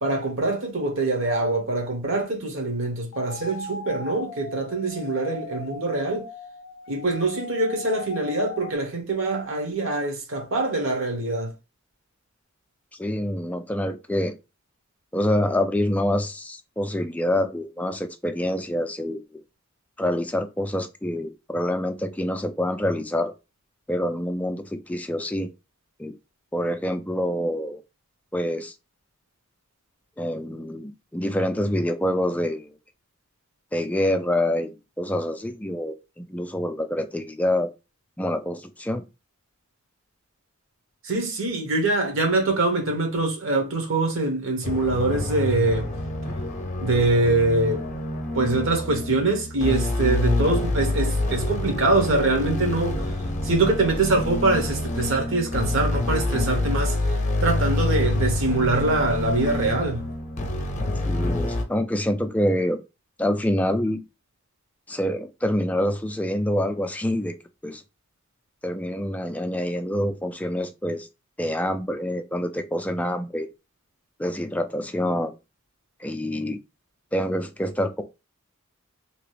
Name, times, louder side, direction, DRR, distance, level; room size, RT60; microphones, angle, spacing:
voice 1, 0.0-6.3 6.9-11.5 41.0-45.9 46.8-47.8 48.3-53.0 53.4-57.0 57.4-60.1, right 2 dB, 65° right, 1.0 m, -24 dB
sound 1, 3.1-8.7, left 2 dB, 75° left, 0.4 m, -38 dB
voice 2, 13.0-14.4 15.1-19.4 20.0-23.3 23.9-25.5 26.0-26.1 26.5-27.8 28.3-28.7 30.2-32.7 33.7-37.7 38.2-39.0 61.1-62.8 63.2-64.0 64.9-67.3 67.6-67.8 68.6-71.1 71.4-73.5 74.2-75.3 76.0-76.6 77.1-78.0, left 1 dB, 5° left, 0.3 m, -26 dB
sound 2, 44.6-61.6, left 1 dB, 35° left, 0.6 m, -27 dB
3.0 x 2.4 x 3.2 m
head